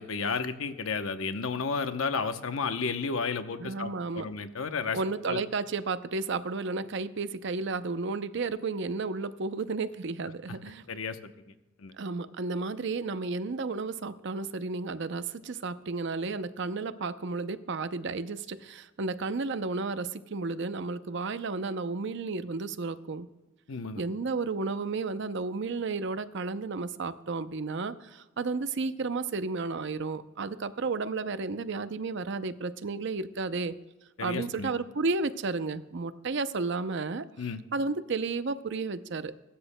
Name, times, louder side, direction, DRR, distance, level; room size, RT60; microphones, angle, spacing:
voice 1, 0.0-5.0 5.3-5.4 10.9-11.3 11.8-11.9 23.7-24.0 34.2-34.7 37.4-37.6, left 5 dB, 85° left, 9 dB, 0.8 m, -32 dB
voice 2, 3.6-4.3 4.9-10.8 12.0-23.3 24.0-33.7 34.2-37.3 37.7-39.3, right 3 dB, 60° right, 12 dB, 0.6 m, -32 dB
22.0 x 13.0 x 2.2 m, 1.1 s
head